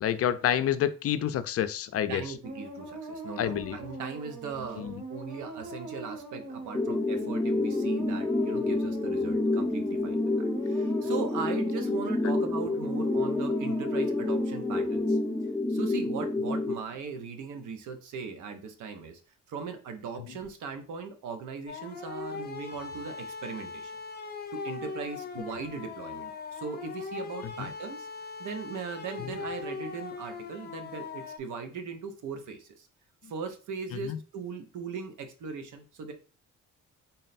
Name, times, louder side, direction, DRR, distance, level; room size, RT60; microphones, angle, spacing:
voice 1, 0.0-2.2 3.4-3.8 4.8-4.9 34.0-34.2, left 10 dB, 50° left, 12 dB, 0.4 m, -28 dB
voice 2, 2.1-15.2 15.7-19.2 19.5-23.9 24.5-28.1 28.4-32.9 33.2-36.1, right 5 dB, 75° right, 7 dB, 0.8 m, -39 dB
sound 1, 2.4-15.7, right 2 dB, 50° right, 1.8 m, -42 dB
sound 2, 6.7-16.7, left 2 dB, 5° left, 0.5 m, -28 dB
sound 3, 21.7-31.4, left 4 dB, 35° left, 0.8 m, -40 dB
3.9 x 2.1 x 4.0 m, 0.37 s
cardioid pair, 90°, 30 cm